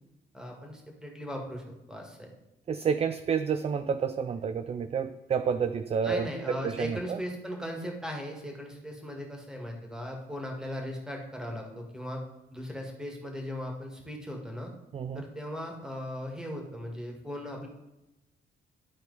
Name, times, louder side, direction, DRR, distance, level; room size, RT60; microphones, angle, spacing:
voice 1, 0.3-2.3 6.0-12.2 12.5-14.7 15.1-17.7, equal, 5° right, 1 dB, 1.9 m, -38 dB
voice 2, 2.7-7.2 14.9-15.2, right 6 dB, 30° right, 10 dB, 0.4 m, -30 dB
12.0 x 4.2 x 4.0 m, 0.97 s
cardioid pair, 90°, 20 cm